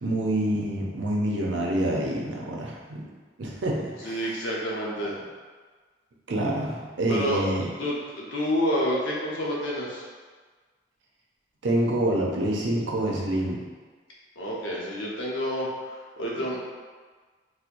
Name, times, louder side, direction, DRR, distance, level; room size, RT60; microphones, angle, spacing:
voice 1, 0.0-3.0 3.4-3.8 4.0-4.3 6.3-7.7 11.6-13.6, right 1 dB, 75° right, -2 dB, 0.6 m, -27 dB
voice 2, 4.0-5.2 7.1-7.5 7.8-10.0 14.4-16.6, equal, 85° left, -4 dB, 0.8 m, -28 dB
4.4 x 2.1 x 2.5 m, 1.5 s
head